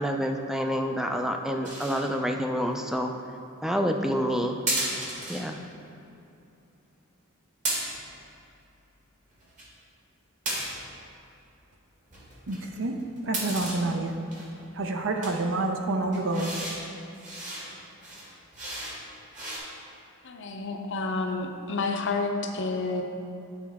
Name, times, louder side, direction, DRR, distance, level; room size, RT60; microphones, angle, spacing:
voice 1, 0.0-3.1 3.6-4.6 5.3-5.6, equal, ahead, 4 dB, 0.3 m, -28 dB
sound 1, 1.6-2.0 4.7-5.4 7.6-8.1 9.3-9.7 10.5-10.9 12.1-13.8 14.3-14.7 15.2-15.3 16.1-16.8 17.1-17.7 18.0-19.0 19.3-19.6, right 1 dB, 35° right, 1.6 m, -33 dB
voice 2, 12.5-13.0 13.2-14.1 14.8-16.6, right 2 dB, 65° right, 4 dB, 0.6 m, -28 dB
voice 3, 20.2-23.0, left 3 dB, 60° left, 4 dB, 0.6 m, -30 dB
9.5 x 4.3 x 3.5 m, 2.8 s
head